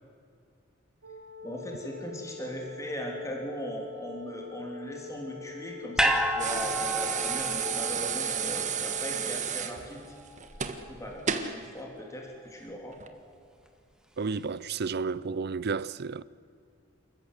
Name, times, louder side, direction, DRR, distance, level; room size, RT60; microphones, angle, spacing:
sound 1, 1.0-9.2, left 5 dB, 75° right, 2.6 m, -44 dB
voice 1, 1.4-10.0 10.9-13.0, equal, 15° left, 3.3 m, -39 dB
sound 2, 6.0-10.3 10.6-10.7, equal, 5° right, 1.6 m, -31 dB
sound 3, 6.4-11.6 12.9-13.1, right 7 dB, 40° right, 1.5 m, -32 dB
voice 2, 14.2-16.2, right 4 dB, 55° right, 0.6 m, -32 dB
28.0 x 14.5 x 8.2 m
head